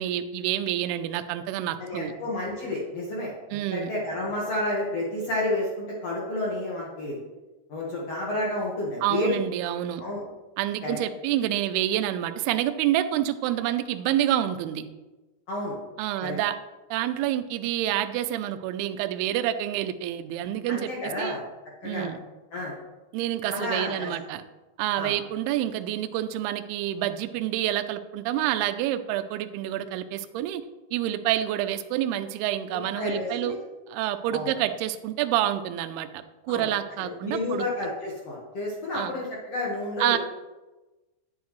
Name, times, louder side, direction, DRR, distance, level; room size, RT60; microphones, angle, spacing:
voice 1, 0.0-2.1 3.5-3.9 9.0-10.0 10.6-14.8 16.0-16.6 16.9-21.4 21.8-22.2 23.1-24.4 24.8-30.6 30.9-33.6 33.9-37.7 38.9-39.1 40.0-40.2, right 12 dB, 85° right, 9 dB, 2.3 m, -28 dB
voice 2, 1.8-7.2 7.7-9.4 10.0-10.2 10.8-11.0 15.5-15.7 16.2-16.4 20.7-21.4 21.8-22.1 22.5-22.7 23.5-24.1 25.0-25.1 32.9-33.6 34.3-34.5 36.5-36.7 37.0-40.2, left 1 dB, 70° left, -4 dB, 1.5 m, -30 dB
10.5 x 9.2 x 3.1 m, 1.1 s
omnidirectional pair, 5.2 m